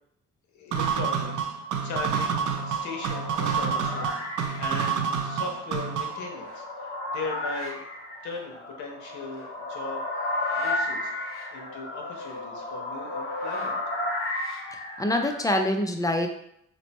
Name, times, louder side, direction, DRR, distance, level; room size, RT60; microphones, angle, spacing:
voice 1, 0.5-7.8 8.2-10.0 10.5-11.1 11.5-13.8, left 4 dB, 75° left, 1 dB, 0.9 m, -38 dB
sound 1, 0.7-6.3, right 7 dB, 85° right, 0.5 m, -28 dB
sound 2, 2.0-15.4, left 2 dB, 45° left, 0.9 m, -34 dB
voice 2, 14.7-16.3, left 1 dB, 10° left, 4 dB, 0.4 m, -25 dB
3.1 x 2.0 x 4.0 m, 0.73 s
cardioid pair, 90°, 30 cm